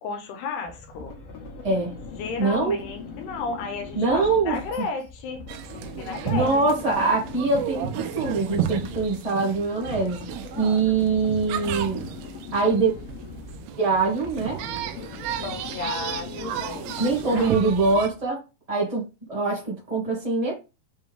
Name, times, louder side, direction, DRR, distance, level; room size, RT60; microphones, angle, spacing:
voice 1, 0.0-1.2 2.2-5.5 5.9-6.6 15.4-17.6, left 4 dB, 90° left, 3.3 m, -33 dB
sound 1, 0.7-18.3, left 4 dB, 55° left, 2.1 m, -40 dB
voice 2, 2.4-2.8 3.9-4.8 6.3-10.2 10.6-12.0 12.5-12.9 13.8-14.6 17.0-18.4 18.7-20.6, right 3 dB, 25° right, 0.8 m, -23 dB
sound 2, 5.5-18.1, right 10 dB, 85° right, 2.6 m, -33 dB
8.1 x 3.5 x 3.5 m
omnidirectional pair, 4.6 m